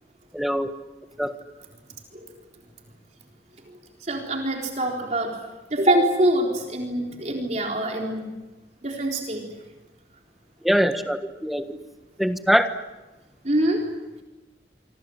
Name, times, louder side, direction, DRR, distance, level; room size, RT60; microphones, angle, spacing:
voice 1, 0.3-0.7 1.2-1.3 10.6-11.6 12.2-12.7, equal, ahead, 8 dB, 1.4 m, -22 dB
voice 2, 4.0-5.3 5.7-8.3 8.8-9.4 13.4-13.8, right 1 dB, 40° right, 1 dB, 3.9 m, -24 dB
26.5 x 26.0 x 7.8 m, 1.1 s
head